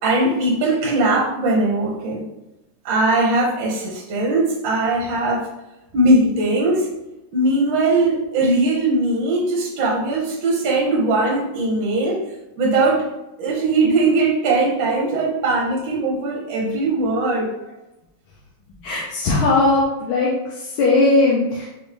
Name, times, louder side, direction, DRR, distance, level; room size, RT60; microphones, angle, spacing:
voice 1, 0.0-2.3 2.8-5.5 5.9-6.9 7.3-12.2 12.6-13.1 13.4-17.5, right 2 dB, 70° right, -3 dB, 1.5 m, -20 dB
voice 2, 18.8-20.3 20.8-21.7, left 2 dB, 85° left, -4 dB, 1.5 m, -18 dB
4.8 x 2.6 x 3.2 m, 0.93 s
omnidirectional pair, 2.3 m